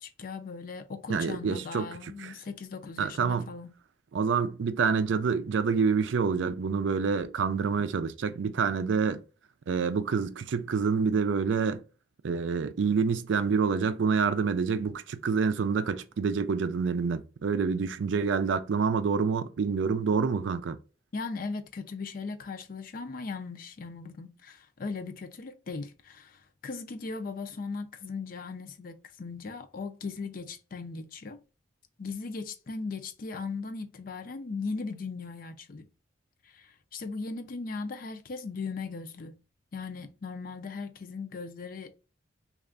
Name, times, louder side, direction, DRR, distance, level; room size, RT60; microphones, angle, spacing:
voice 1, 0.0-3.7 21.1-31.4 32.0-35.9 36.4-39.4 39.7-41.9, left 4 dB, 50° left, 0.4 m, -38 dB
voice 2, 1.1-1.9 2.2-2.3 3.0-3.5 4.1-9.2 9.7-11.8 12.2-20.8, right 5 dB, 80° right, 0.4 m, -27 dB
3.3 x 2.4 x 3.7 m
head